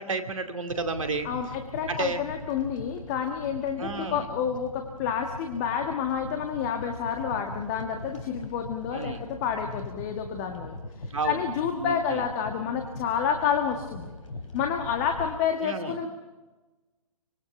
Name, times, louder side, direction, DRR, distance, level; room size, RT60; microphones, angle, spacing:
voice 1, 0.0-1.3 1.9-2.2 3.8-4.3 8.9-9.2 11.1-11.4 11.8-12.2 15.6-16.0, right 4 dB, 60° right, 6 dB, 2.4 m, -31 dB
sound 1, 0.7-15.4, left 2 dB, 60° left, 3.3 m, -41 dB
voice 2, 1.2-10.8 11.2-14.1 14.5-16.1, left 7 dB, 25° left, 5 dB, 1.6 m, -29 dB
25.0 x 21.0 x 5.9 m, 1.2 s
figure-of-eight pair, 125°, 19 cm